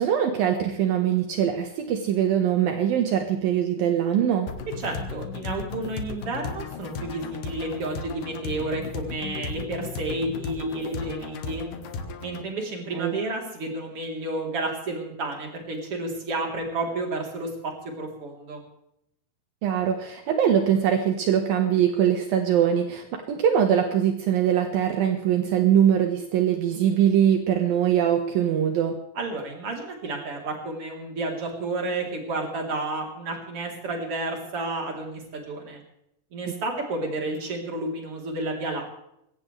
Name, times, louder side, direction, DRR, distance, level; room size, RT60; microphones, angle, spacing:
voice 1, 0.0-4.5 12.9-13.2 19.6-28.9 36.5-36.6, right 9 dB, 70° right, 4 dB, 3.1 m, -22 dB
sound 1, 4.5-12.5, left 5 dB, 65° left, 2.9 m, -35 dB
voice 2, 4.8-11.6 12.2-18.6 29.1-35.8 36.3-38.9, right 2 dB, 40° right, 1 dB, 4.3 m, -31 dB
21.5 x 17.5 x 3.4 m, 0.78 s
omnidirectional pair, 4.3 m